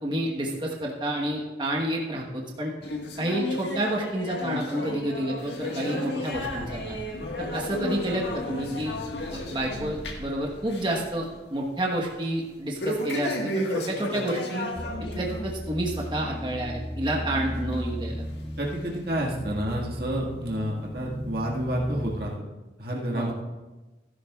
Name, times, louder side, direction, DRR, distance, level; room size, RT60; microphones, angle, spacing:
voice 1, 0.0-2.7 3.2-7.0 7.4-8.9 9.3-14.7 15.1-18.3 23.1-23.3, right 1 dB, 25° right, -1 dB, 1.2 m, -29 dB
sound 1, 2.8-10.4 10.7-11.0 11.4-11.5 12.8-15.5 15.9-16.1 16.7-16.8 17.7-17.8 18.6-18.7, left 1 dB, 80° left, 1.5 m, -33 dB
sound 2, 5.4-11.3, left 1 dB, 60° left, 1.3 m, -44 dB
sound 3, 14.8-22.3, equal, 5° left, 0.4 m, -36 dB
voice 2, 18.6-22.3 22.8-23.3, right 1 dB, 60° right, -3 dB, 1.8 m, -29 dB
16.5 x 11.5 x 2.4 m, 1.2 s
head